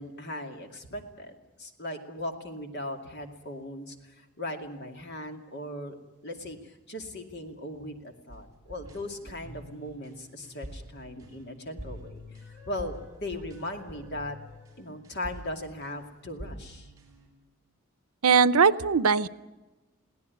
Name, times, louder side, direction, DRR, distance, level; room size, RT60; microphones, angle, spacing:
voice 1, 0.0-6.0 6.2-14.4 14.8-16.9, left 1 dB, 50° left, 5 dB, 2.4 m, -38 dB
sound 1, 8.3-16.1 16.4-17.3, equal, 15° right, 6.4 m, -46 dB
voice 2, 18.2-19.3, right 5 dB, 85° right, 17 dB, 0.7 m, -20 dB
22.5 x 17.0 x 9.5 m, 1.1 s
head